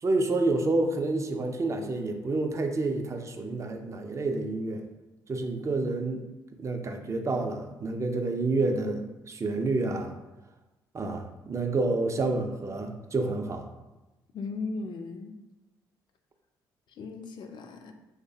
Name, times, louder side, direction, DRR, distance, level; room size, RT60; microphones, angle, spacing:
voice 1, 0.0-4.8 5.3-6.3 6.6-10.1 10.9-13.7, right 2 dB, 30° right, 5 dB, 0.4 m, -29 dB
voice 2, 14.3-15.3 17.0-17.9, left 3 dB, 45° left, 5 dB, 0.3 m, -37 dB
3.2 x 2.0 x 2.6 m, 1.1 s
hypercardioid pair, 45°, 10 cm